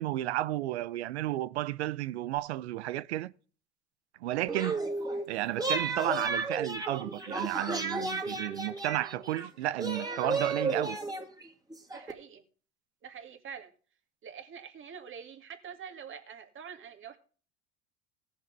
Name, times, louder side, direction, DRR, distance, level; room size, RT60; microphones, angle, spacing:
voice 1, 0.0-3.3 4.2-4.8 5.3-11.0, right 15 dB, 75° right, 0.7 m, -32 dB
sound 1, 4.5-5.3 5.6-9.5 9.8-12.1, right 3 dB, 10° right, 2.4 m, -33 dB
voice 2, 11.9-12.4 13.0-13.7 14.2-17.2, right 7 dB, 35° right, 2.3 m, -45 dB
18.0 x 7.0 x 3.4 m
hypercardioid pair, 75°, 33 cm